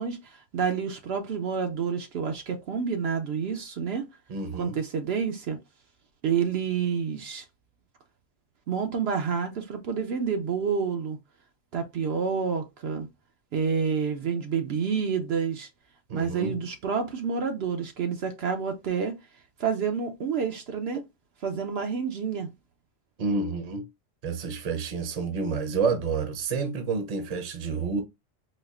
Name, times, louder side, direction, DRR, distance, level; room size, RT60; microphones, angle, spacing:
voice 1, 0.0-4.1 4.6-5.6 6.2-7.4 8.7-11.2 11.7-13.1 13.5-15.7 16.1-19.2 19.6-21.0 21.4-22.5, right 6 dB, 75° right, 0.9 m, -28 dB
voice 2, 4.3-4.8 16.1-16.6 23.2-23.9 24.2-28.0, right 4 dB, 40° right, 0.7 m, -29 dB
4.1 x 2.4 x 2.4 m
omnidirectional pair, 1.1 m